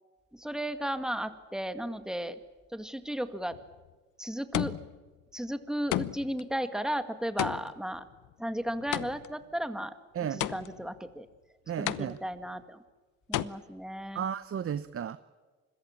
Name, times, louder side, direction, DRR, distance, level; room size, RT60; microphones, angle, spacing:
voice 1, 0.4-2.4 2.7-3.6 4.2-4.7 5.3-8.0 8.4-9.9 10.3-11.3 11.8-12.8 13.3-14.3, equal, ahead, 10 dB, 2.0 m, -34 dB
sound 1, 3.5-3.9 4.5-5.1 5.9-6.4 7.4-9.4 10.4-11.0 11.9-12.5 13.3-13.4, left 14 dB, 90° left, 0.9 m, -33 dB
voice 2, 11.7-12.2 14.1-15.2, right 8 dB, 45° right, 13 dB, 1.0 m, -33 dB
27.0 x 22.0 x 7.3 m, 1.4 s
cardioid pair, 90°, 30 cm